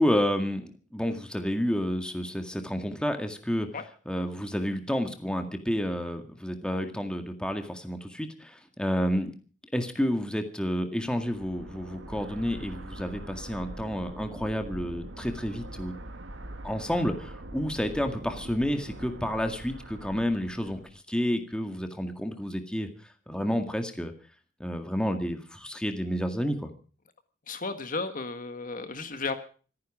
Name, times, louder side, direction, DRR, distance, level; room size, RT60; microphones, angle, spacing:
voice 1, 0.0-3.7 4.1-9.3 9.7-15.9 16.6-20.8 21.1-22.9 23.3-24.1 24.6-26.7, equal, 5° left, 5 dB, 2.0 m, -30 dB
sound 1, 11.1-21.0, right 1 dB, 85° right, 1.7 m, -43 dB
voice 2, 27.5-29.4, left 3 dB, 45° left, 8 dB, 1.5 m, -33 dB
26.5 x 9.7 x 4.9 m, 0.40 s
head